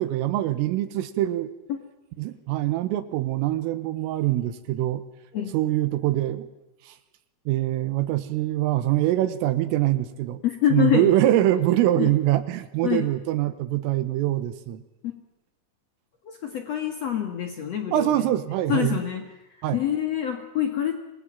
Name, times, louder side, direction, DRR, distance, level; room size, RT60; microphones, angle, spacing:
voice 1, 0.0-1.5 2.2-5.1 5.5-6.5 6.8-7.0 7.5-10.4 10.7-14.8 17.9-19.0 19.6-19.8, right 14 dB, 85° right, 11 dB, 3.8 m, -24 dB
voice 2, 10.4-11.1 12.0-12.1 12.8-13.1 15.0-15.1 16.2-18.1 18.7-19.2 19.7-21.0, left 10 dB, 80° left, 6 dB, 1.5 m, -26 dB
25.5 x 20.5 x 9.0 m, 0.96 s
omnidirectional pair, 5.8 m